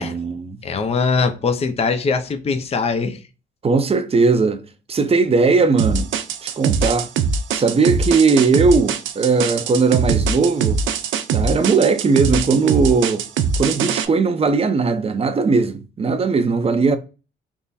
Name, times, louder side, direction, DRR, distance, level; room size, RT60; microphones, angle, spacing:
voice 1, 0.0-0.6 3.6-4.6 4.9-6.1 6.4-7.1 7.5-10.8 11.3-13.2 13.6-17.0, right 4 dB, 30° right, 0.7 m, -18 dB
voice 2, 0.6-3.2, left 4 dB, 30° left, 0.6 m, -21 dB
sound 1, 5.8-14.1, right 5 dB, 75° right, 0.5 m, -21 dB
3.6 x 2.1 x 4.0 m
cardioid pair, 90°, 20 cm